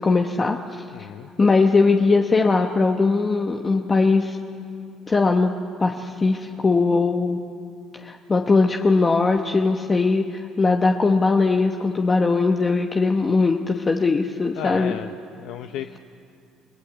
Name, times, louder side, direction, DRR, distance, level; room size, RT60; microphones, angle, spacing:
voice 1, 0.0-1.1 1.4-4.4 5.1-7.4 7.9-15.0, left 3 dB, 30° left, 3 dB, 1.2 m, -20 dB
voice 2, 0.9-1.3 14.5-15.1 15.4-16.0, left 11 dB, 75° left, 8 dB, 0.7 m, -33 dB
29.0 x 18.5 x 8.1 m, 2.5 s
supercardioid pair, 85°, 0 cm